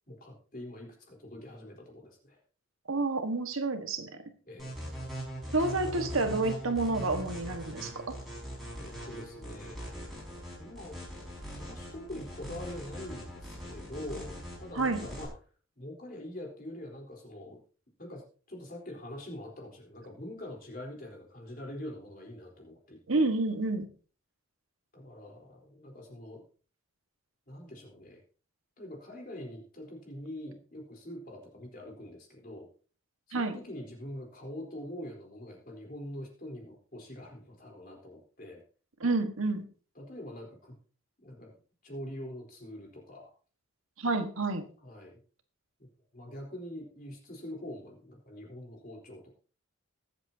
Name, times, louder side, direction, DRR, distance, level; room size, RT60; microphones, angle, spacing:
voice 1, 0.1-2.4 4.5-4.8 8.8-9.9 10.6-11.0 11.3-15.3 15.8-17.6 18.0-23.3 24.9-26.4 27.5-28.2 28.8-32.7 33.3-38.6 39.9-40.8 41.2-41.5 41.8-43.3 44.8-45.2 46.1-49.3, left 1 dB, 40° left, 0 dB, 3.9 m, -44 dB
voice 2, 2.9-4.1 5.5-8.2 14.7-15.0 23.1-23.9 33.3-33.6 39.0-39.6 44.0-44.6, right 3 dB, 75° right, 6 dB, 1.6 m, -29 dB
sound 1, 4.6-15.3, right 1 dB, ahead, 5.7 m, -41 dB
21.0 x 8.0 x 2.8 m, 0.39 s
head